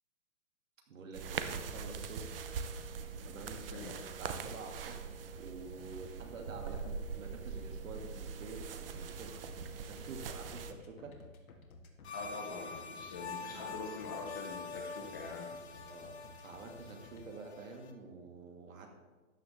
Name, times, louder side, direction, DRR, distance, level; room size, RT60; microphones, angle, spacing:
voice 1, 0.9-2.9 3.2-3.9 4.2-11.2 13.5-13.7 15.9-16.2 16.4-18.9, right 3 dB, 70° right, 2 dB, 2.3 m, -49 dB
sound 1, 1.1-10.7, right 5 dB, 45° right, 0.7 m, -42 dB
sound 2, 9.2-17.2, left 3 dB, 80° left, 1.8 m, -55 dB
sound 3, 12.0-17.9, left 4 dB, 50° left, 1.3 m, -46 dB
voice 2, 12.1-15.5, left 3 dB, 15° left, 0 dB, 0.6 m, -44 dB
13.0 x 8.7 x 3.4 m, 1.2 s
hypercardioid pair, 160°, 41 cm